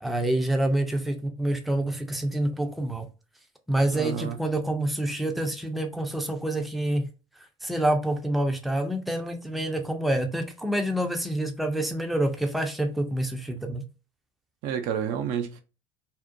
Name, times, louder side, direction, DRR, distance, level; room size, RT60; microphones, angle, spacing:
voice 1, 0.0-3.1 3.7-7.1 7.6-13.8, right 1 dB, ahead, 0.5 m, -27 dB
voice 2, 3.9-4.4 14.6-15.6, right 8 dB, 60° right, 0.5 m, -30 dB
2.6 x 2.0 x 2.5 m
hypercardioid pair, 65°, 16 cm